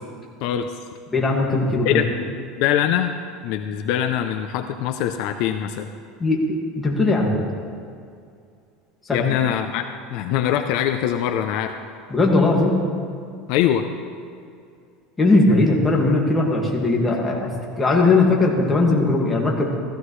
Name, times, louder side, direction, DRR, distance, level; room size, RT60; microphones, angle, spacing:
voice 1, 0.4-0.7 1.9-2.0 2.6-3.1 3.4-5.9 9.1-11.7 13.5-13.9, left 10 dB, 60° left, 7 dB, 0.6 m, -23 dB
voice 2, 1.1-2.0 6.2-7.4 9.0-9.2 12.1-12.7 15.2-19.7, left 2 dB, 15° left, -2 dB, 2.0 m, -19 dB
15.0 x 15.0 x 3.2 m, 2.3 s
supercardioid pair, 150°, 0 cm